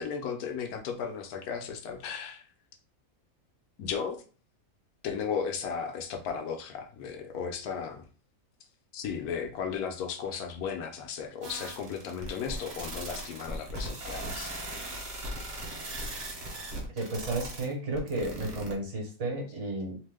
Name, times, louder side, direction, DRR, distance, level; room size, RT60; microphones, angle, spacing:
voice 1, 0.0-2.4 3.8-4.2 5.0-8.1 8.9-14.5, left 6 dB, 90° left, 5 dB, 1.1 m, -35 dB
sound 1, 11.4-18.7, right 1 dB, 40° right, 0.7 m, -38 dB
voice 2, 16.9-19.9, right 2 dB, 55° right, 0 dB, 1.2 m, -33 dB
3.0 x 2.0 x 3.3 m, 0.36 s
omnidirectional pair, 1.5 m